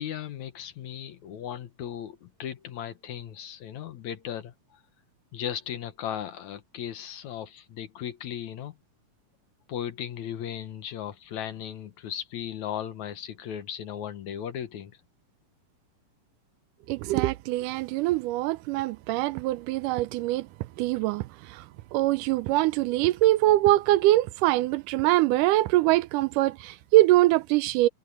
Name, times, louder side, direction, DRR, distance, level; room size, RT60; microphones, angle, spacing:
voice 1, 0.0-4.5 5.3-8.7 9.7-14.9, left 10 dB, 70° left, 2.4 m, -36 dB
voice 2, 16.9-20.5 20.8-21.6 21.9-27.9, right 16 dB, 80° right, 2.0 m, -23 dB
omnidirectional pair, 3.8 m